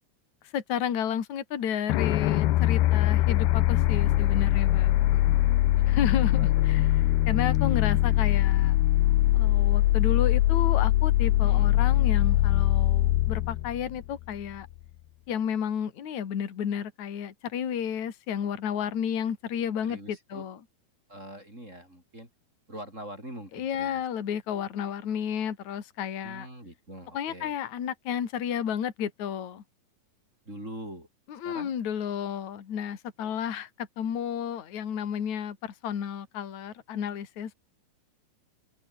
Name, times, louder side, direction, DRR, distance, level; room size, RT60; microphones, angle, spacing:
voice 1, 0.5-5.1 5.9-8.8 9.3-14.7 15.3-20.6 23.5-26.5 27.1-29.6 31.3-37.5, left 8 dB, 50° left, 3.7 m, -32 dB
sound 1, 1.9-14.6, left 16 dB, 85° left, 3.1 m, -22 dB
voice 2, 5.1-6.0 6.3-6.9 11.4-11.7 19.8-20.5 21.1-22.3 22.7-24.1 26.2-27.6 30.4-31.1 31.4-31.7, right 1 dB, 15° right, 8.1 m, -44 dB
omnidirectional pair, 4.4 m